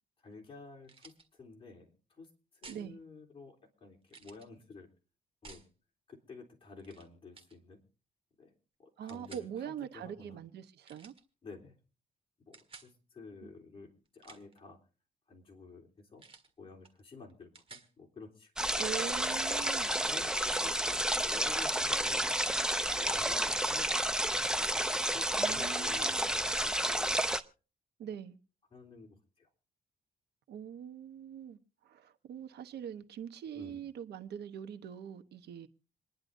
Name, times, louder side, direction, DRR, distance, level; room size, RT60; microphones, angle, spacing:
voice 1, 0.2-4.9 5.4-5.7 6.1-7.8 8.4-8.5 8.8-10.4 11.4-11.8 12.5-14.8 15.3-16.2 16.6-18.8 19.9-22.3 22.6-24.4 24.7-27.2 28.0-28.1 28.7-29.5 33.5-33.8, left 4 dB, 30° left, 3.5 m, -52 dB
sound 1, 0.8-1.3 2.6-2.9 4.1-4.5 5.4-5.7 6.8-7.1 7.3-7.6 9.1-9.5 10.8-11.2 12.5-12.9 14.1-14.6 16.2-16.5 16.8-17.0 17.3-17.9 19.5-19.6, right 4 dB, 35° right, 1.8 m, -54 dB
voice 2, 2.7-3.0 9.0-11.1 13.4-13.5 18.8-19.9 25.4-26.2 28.0-28.4 30.5-31.6 31.8-35.7, right 9 dB, 85° right, 1.1 m, -43 dB
sound 2, 18.6-27.4, right 1 dB, 5° right, 0.6 m, -31 dB
27.5 x 10.5 x 2.7 m
cardioid pair, 125°, 17 cm